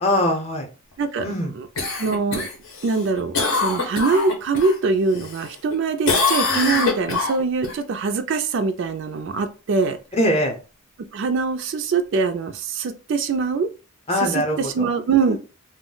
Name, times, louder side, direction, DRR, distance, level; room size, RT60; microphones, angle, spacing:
voice 1, 0.0-0.7 1.2-1.5 10.1-10.6 14.1-14.9 15.3-15.4, left 1 dB, 25° left, 2 dB, 0.6 m, -22 dB
Cough, 1.8-4.8 5.2-5.8 6.1-7.7 12.2-12.3, left 4 dB, 65° left, 0.7 m, -24 dB
voice 2, 2.0-2.5 2.8-10.0 11.1-13.7 14.2-15.4, right 4 dB, 55° right, 9 dB, 0.3 m, -23 dB
2.2 x 2.0 x 3.7 m, 0.33 s
head